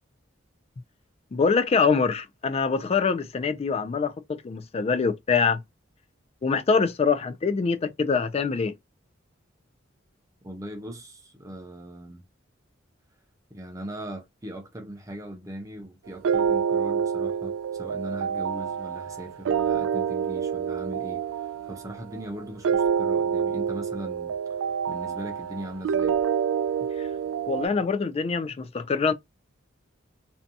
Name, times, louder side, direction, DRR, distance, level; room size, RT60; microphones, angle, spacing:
voice 1, 1.3-5.6 6.4-8.7 27.5-29.1, left 5 dB, 30° left, 0.3 m, -24 dB
voice 2, 10.4-12.2 13.5-24.3 24.9-26.2, right 1 dB, 15° right, 0.6 m, -39 dB
sound 1, 16.2-27.7, right 7 dB, 85° right, 0.3 m, -27 dB
2.6 x 2.2 x 2.6 m
head